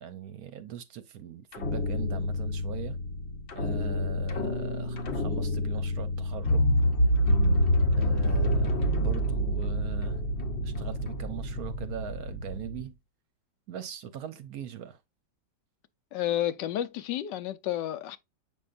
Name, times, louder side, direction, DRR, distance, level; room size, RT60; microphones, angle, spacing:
voice 1, 0.0-3.0 3.5-6.7 8.0-10.3 10.6-13.0 13.7-15.0, right 9 dB, 65° right, 1.0 m, -41 dB
sound 1, 1.5-12.8, equal, 45° left, 0.9 m, -27 dB
voice 2, 16.1-18.2, left 12 dB, 80° left, 1.3 m, -31 dB
7.7 x 5.5 x 2.5 m
omnidirectional pair, 1.9 m